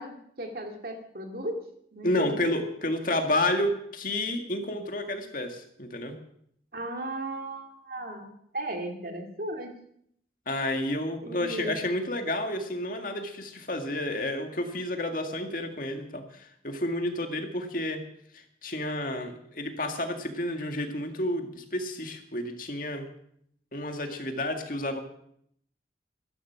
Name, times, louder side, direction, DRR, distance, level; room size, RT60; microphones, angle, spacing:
voice 1, 0.0-1.6 1.9-2.4 6.7-9.7 11.2-11.8, right 1 dB, 55° right, 4 dB, 2.4 m, -36 dB
voice 2, 2.0-6.2 10.5-18.0 18.3-23.1 23.7-25.0, left 1 dB, 50° left, 5 dB, 2.0 m, -30 dB
15.0 x 13.5 x 5.9 m, 0.68 s
head